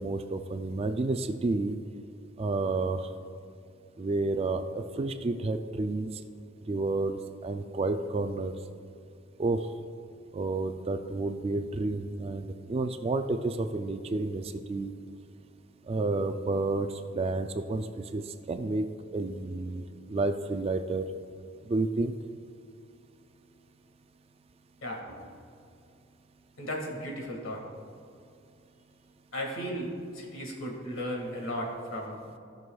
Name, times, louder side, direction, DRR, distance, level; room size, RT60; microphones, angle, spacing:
voice 1, 0.0-1.8 2.4-3.1 4.0-6.2 6.7-8.5 9.4-9.7 10.3-14.9 15.9-18.9 19.1-21.1 21.6-22.1, right 3 dB, 30° right, 8 dB, 0.3 m, -30 dB
voice 2, 24.8-25.2 26.6-27.6 29.3-32.2, equal, 70° left, 0 dB, 1.9 m, -35 dB
16.0 x 6.2 x 2.3 m, 2.5 s
head